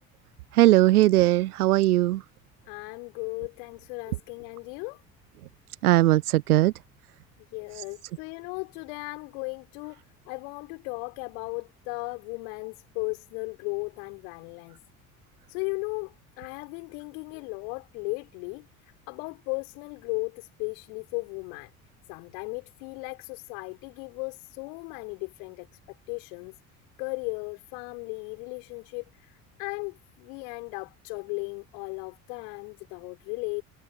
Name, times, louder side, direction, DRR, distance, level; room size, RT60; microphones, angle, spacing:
voice 1, 0.5-2.2 5.8-6.7 7.8-7.9, right 16 dB, 75° right, 0.8 m, -19 dB
voice 2, 2.7-5.0 7.5-14.8 15.5-21.7 22.1-26.6 27.0-33.6, left 40 dB or more, 65° left, 4.1 m, -36 dB
figure-of-eight pair, 55°, 45 cm